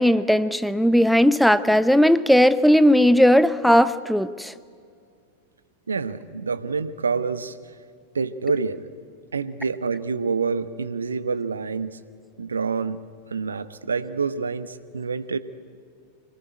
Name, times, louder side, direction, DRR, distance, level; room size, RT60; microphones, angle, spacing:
voice 1, 0.0-4.5, equal, ahead, 15 dB, 0.7 m, -17 dB
voice 2, 5.9-7.6 8.1-8.8 9.3-12.0 12.4-13.0 13.3-15.4, right 5 dB, 75° right, 14 dB, 1.0 m, -27 dB
25.0 x 19.0 x 9.9 m, 2.2 s
figure-of-eight pair, 90°, 0 cm